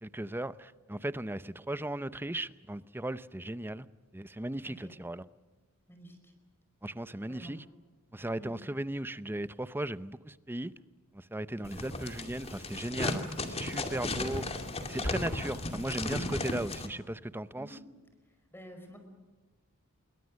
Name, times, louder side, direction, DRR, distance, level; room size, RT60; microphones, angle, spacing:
voice 1, 0.0-3.9 4.1-5.3 6.8-7.7 8.1-10.7 11.3-14.4 14.9-17.8, right 1 dB, 10° right, 0.6 m, -37 dB
voice 2, 5.9-6.3 7.3-7.6 8.4-8.5 11.5-11.7 17.6-17.8 18.5-19.0, equal, 10° left, 5.1 m, -50 dB
sound 1, 11.6-16.9, left 2 dB, 30° left, 2.4 m, -35 dB
27.5 x 23.0 x 6.4 m
head